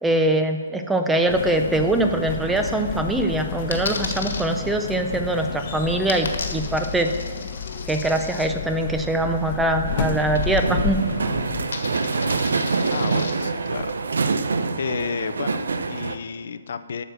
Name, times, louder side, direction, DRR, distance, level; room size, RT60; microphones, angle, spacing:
voice 1, 0.0-7.1 7.9-11.0, right 1 dB, 5° right, 5 dB, 0.4 m, -23 dB
sound 1, 1.3-11.6, left 6 dB, 40° left, 0.9 m, -31 dB
Coin (dropping), 3.7-4.4 6.1-8.5 10.3-11.0 11.2-13.3, left 4 dB, 75° left, 1.6 m, -34 dB
sound 2, 9.8-16.2, right 4 dB, 85° right, 0.6 m, -25 dB
voice 2, 12.9-13.9 14.8-17.0, left 6 dB, 55° left, 12 dB, 0.5 m, -31 dB
8.9 x 6.5 x 6.5 m, 1.5 s
hypercardioid pair, 170°, 0 cm